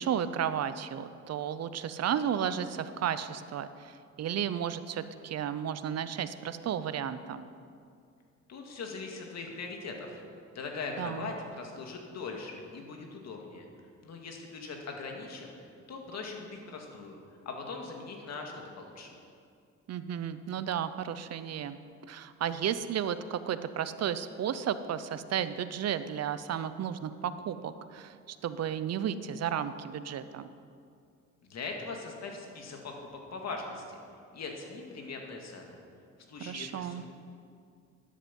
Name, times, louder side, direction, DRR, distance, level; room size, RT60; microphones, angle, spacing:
voice 1, 0.0-7.4 11.0-11.3 19.9-21.8 22.1-30.5 36.4-37.0, right 9 dB, 55° right, 13 dB, 0.7 m, -33 dB
voice 2, 8.5-10.2 10.5-13.7 14.0-15.5 15.9-19.1 31.5-34.0 34.3-35.8 36.3-37.1, left 4 dB, 60° left, 2 dB, 2.2 m, -41 dB
13.0 x 10.0 x 5.4 m, 2.3 s
cardioid pair, 90°, 30 cm